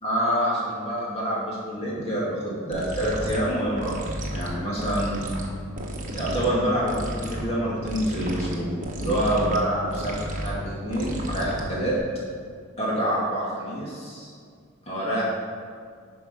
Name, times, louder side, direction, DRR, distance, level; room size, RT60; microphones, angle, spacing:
voice 1, 0.0-4.0 4.3-5.2 6.1-8.7 8.9-12.0 12.8-14.3 14.9-15.2, right 1 dB, 30° left, -7 dB, 2.0 m, -27 dB
sound 1, 2.7-12.0, equal, 40° right, 1.1 m, -33 dB
10.5 x 4.8 x 5.4 m, 2.1 s
head